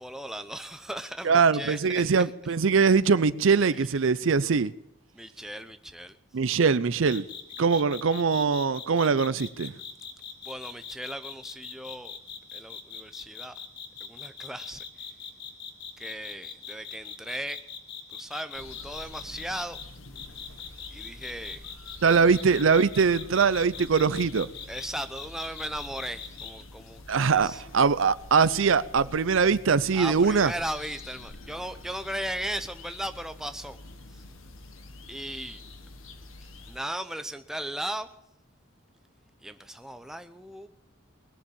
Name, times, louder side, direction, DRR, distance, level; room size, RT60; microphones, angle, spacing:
voice 1, 0.0-2.1 5.1-6.2 10.4-12.2 12.5-13.5 14.0-15.2 16.0-17.6 18.1-19.8 20.9-21.6 22.1-22.2 24.7-27.0 27.3-27.6 29.9-33.8 34.1-34.2 35.1-35.6 36.6-38.1 39.4-40.7, right 1 dB, ahead, 0.7 m, -37 dB
voice 2, 1.2-4.7 6.3-7.3 7.6-9.8 22.0-24.5 27.1-30.5, right 5 dB, 70° right, 0.5 m, -22 dB
sound 1, 7.1-19.8 20.1-26.5, left 7 dB, 55° left, 1.7 m, -41 dB
sound 2, 18.5-36.8, left 2 dB, 80° left, 1.4 m, -47 dB
20.0 x 7.2 x 8.6 m
head